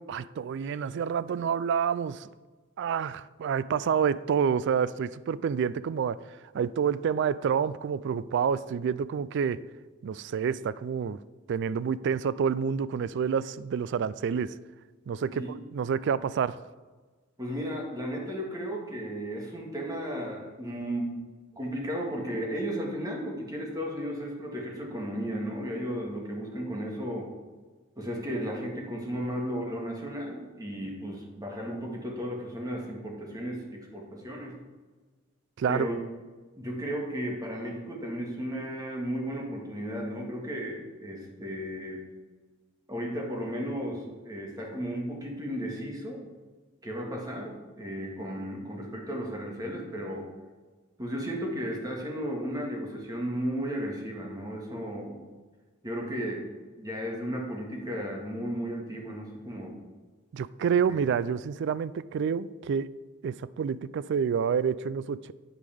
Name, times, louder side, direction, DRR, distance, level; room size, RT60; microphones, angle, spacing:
voice 1, 0.1-2.3 2.8-6.2 6.5-9.6 10.0-11.2 11.5-14.5 15.1-16.6 35.6-35.9 60.3-62.9 63.2-65.3, right 7 dB, 60° right, 0.3 m, -28 dB
voice 2, 17.4-21.2 21.6-27.3 28.0-34.5 35.7-36.0 36.6-42.0 42.9-46.2 46.8-50.3 51.0-55.2 55.8-59.8, equal, 20° right, 1.8 m, -34 dB
9.5 x 8.4 x 3.5 m
head